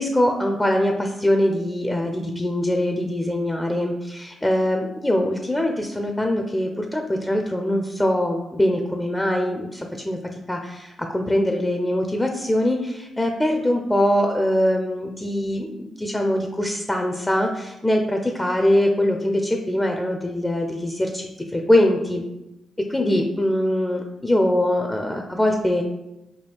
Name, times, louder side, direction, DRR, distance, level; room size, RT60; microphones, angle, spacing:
voice 1, 0.0-10.2 10.5-21.3 21.5-22.2 22.9-25.8, left 1 dB, 20° left, 3 dB, 0.5 m, -22 dB
4.5 x 2.3 x 3.4 m, 0.94 s
supercardioid pair, 45°, 0 cm